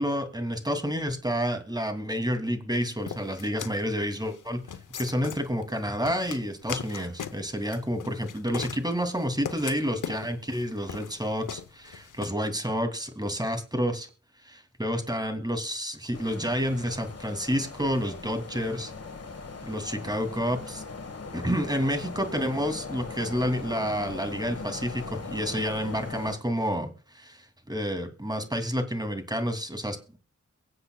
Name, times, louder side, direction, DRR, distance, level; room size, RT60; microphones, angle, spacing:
voice 1, 0.0-4.6 5.0-14.1 14.4-18.9 19.7-20.8 21.3-30.2, equal, 15° right, 6 dB, 2.7 m, -29 dB
sound 1, 3.1-12.3, left 8 dB, 85° left, 0.9 m, -39 dB
sound 2, 16.1-26.4, left 4 dB, 55° left, 1.5 m, -40 dB
23.0 x 7.9 x 2.3 m, 0.37 s
cardioid pair, 45°, 30 cm